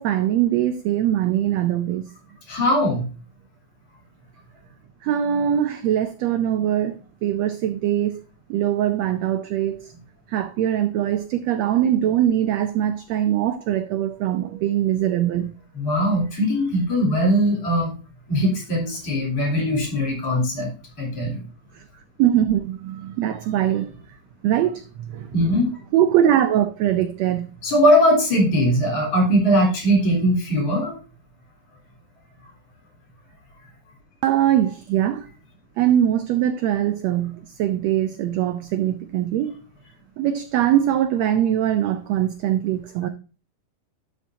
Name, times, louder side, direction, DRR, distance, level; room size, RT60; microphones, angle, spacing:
voice 1, 0.0-2.1 5.0-8.2 8.5-9.9 10.3-15.5 21.7-21.8 22.2-23.9 24.4-25.3 25.9-27.5 34.2-35.3 35.8-39.5 40.2-43.1, right 11 dB, 85° right, 1.5 m, -22 dB
voice 2, 2.5-3.1 15.8-17.9 18.3-20.7 21.0-21.4 25.3-25.7 27.6-31.0, equal, 50° left, 4.5 m, -20 dB
12.0 x 5.9 x 2.7 m
omnidirectional pair, 3.6 m